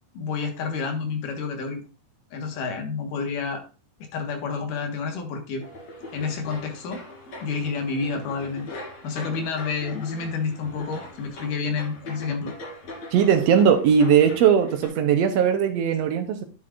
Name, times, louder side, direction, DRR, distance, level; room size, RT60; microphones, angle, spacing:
voice 1, 0.1-1.8 2.3-3.6 4.1-5.6 6.1-7.0 7.4-8.7 9.0-12.5, left 5 dB, 70° left, 2.9 m, -29 dB
sound 1, 5.6-14.9, left 2 dB, 50° left, 4.3 m, -41 dB
voice 2, 13.1-16.4, right 7 dB, 75° right, 1.5 m, -19 dB
10.5 x 7.6 x 2.5 m
omnidirectional pair, 4.0 m